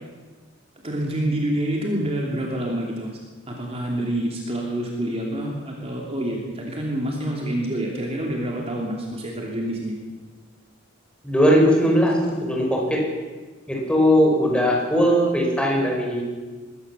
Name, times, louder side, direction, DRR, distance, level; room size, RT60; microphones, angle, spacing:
voice 1, 0.8-3.1 3.5-9.9, right 1 dB, 30° right, -1 dB, 3.0 m, -27 dB
voice 2, 11.2-13.0 13.7-16.2, equal, 5° left, -1 dB, 5.0 m, -19 dB
21.5 x 17.0 x 7.0 m, 1.3 s
head